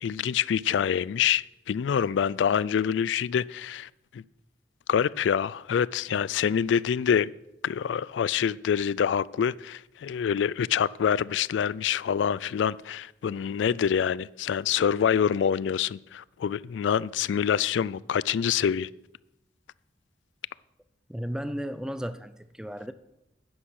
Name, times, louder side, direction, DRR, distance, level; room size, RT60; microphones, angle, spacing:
voice 1, 0.0-4.2 4.9-7.3 7.6-18.9, left 8 dB, 80° left, 0.3 m, -26 dB
voice 2, 21.1-22.9, equal, 5° right, 0.5 m, -34 dB
11.0 x 10.0 x 6.3 m
head